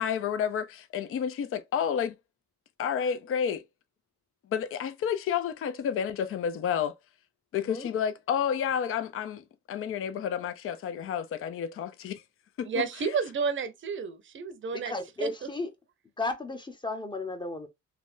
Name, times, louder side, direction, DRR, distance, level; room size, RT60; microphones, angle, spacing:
voice 1, 0.0-2.2 2.8-3.6 4.5-6.9 7.5-12.2 12.6-12.8, left 8 dB, 45° left, 0.5 m, -30 dB
voice 2, 7.5-7.9 14.7-15.7 16.2-17.7, left 2 dB, 15° left, 0.8 m, -34 dB
voice 3, 12.6-15.3, right 5 dB, 40° right, 0.7 m, -31 dB
3.4 x 2.2 x 2.5 m
cardioid pair, 90°, 30 cm